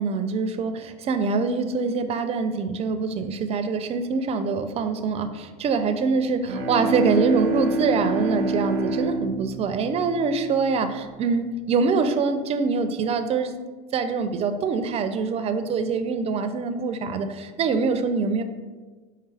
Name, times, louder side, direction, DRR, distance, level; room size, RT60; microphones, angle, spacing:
voice 1, 0.0-13.5 13.9-18.4, right 4 dB, 30° right, 9 dB, 0.4 m, -24 dB
Bowed string instrument, 6.3-11.0, right 2 dB, 85° right, 0.5 m, -28 dB
4.6 x 3.4 x 3.3 m, 1.3 s
supercardioid pair, 100°, 20 cm